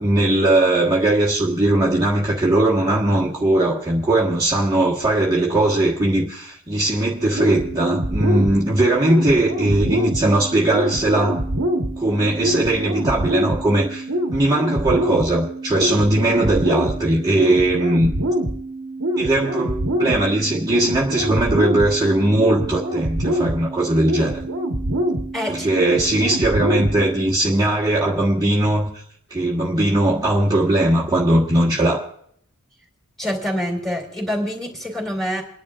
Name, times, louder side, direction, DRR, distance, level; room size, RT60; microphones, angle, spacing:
voice 1, 0.0-11.4 12.0-18.1 19.2-24.4 25.5-28.9 29.3-32.0, right 1 dB, 20° right, -5 dB, 1.4 m, -19 dB
sound 1, 7.3-27.3, right 1 dB, 85° right, 1.3 m, -25 dB
voice 2, 25.3-25.7 33.2-35.4, equal, ahead, 0 dB, 3.3 m, -26 dB
30.0 x 10.5 x 2.5 m, 0.68 s
head